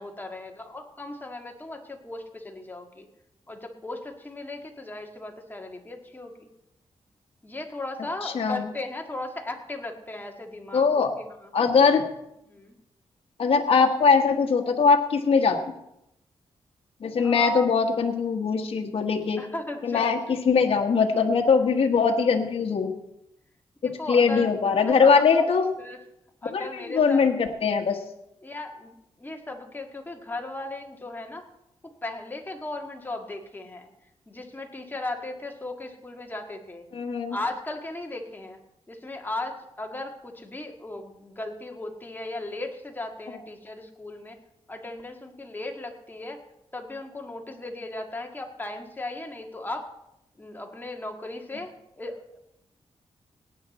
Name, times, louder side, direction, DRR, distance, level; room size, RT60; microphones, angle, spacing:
voice 1, 0.0-3.1 3.5-6.5 7.4-11.5 12.5-12.7 17.2-17.8 19.4-20.1 23.8-24.5 24.9-25.5 25.8-26.0 26.4-27.2 28.4-31.4 31.8-33.9 34.3-36.9 37.3-38.6 38.9-44.4 44.7-46.4 46.7-49.9 50.4-52.4, left 2 dB, 15° left, 3 dB, 1.7 m, -37 dB
voice 2, 8.2-8.7 10.7-11.1 11.5-12.1 13.4-15.6 17.0-19.4 19.8-22.9 23.8-25.7 26.5-28.0 36.9-37.4, left 5 dB, 60° left, 2 dB, 1.3 m, -21 dB
18.0 x 9.5 x 4.2 m, 0.84 s
wide cardioid pair, 105°, 11 cm